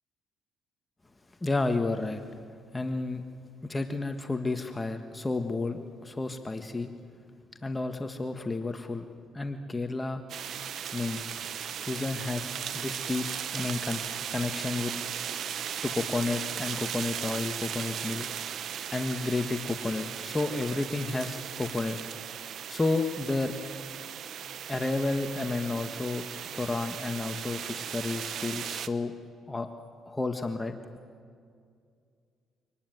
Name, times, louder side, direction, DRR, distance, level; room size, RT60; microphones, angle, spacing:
voice 1, 1.4-2.2 2.7-3.2 3.6-6.9 7.6-9.0 9.3-10.2 10.9-11.2 11.8-12.5 12.7-13.2 13.5-14.0 14.3-14.9 15.8-18.3 18.9-22.0 22.7-23.5 24.7-26.2 26.5-29.1 29.5-29.7 30.1-30.7, left 3 dB, 20° left, 7 dB, 1.5 m, -31 dB
sound 1, 10.3-28.9, right 9 dB, 65° right, 1.1 m, -37 dB
25.5 x 19.0 x 9.4 m, 2.2 s
supercardioid pair, 70°, 0 cm